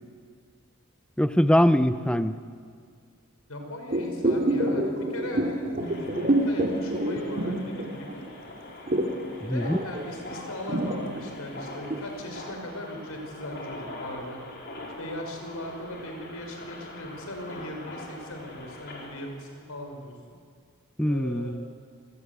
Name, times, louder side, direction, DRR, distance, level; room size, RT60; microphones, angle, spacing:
voice 1, 1.2-2.4 9.4-9.8 21.0-21.7, equal, 5° left, 11 dB, 0.7 m, -22 dB
voice 2, 3.5-8.3 9.4-14.4 15.0-20.4 21.0-21.6, equal, 85° left, 3 dB, 5.4 m, -39 dB
sound 1, 3.9-8.3 8.6-12.1 12.5-12.6, right 1 dB, 40° right, 2.7 m, -27 dB
sound 2, 5.8-19.2, left 1 dB, 50° left, 5.0 m, -43 dB
27.5 x 20.0 x 8.3 m, 2.1 s
head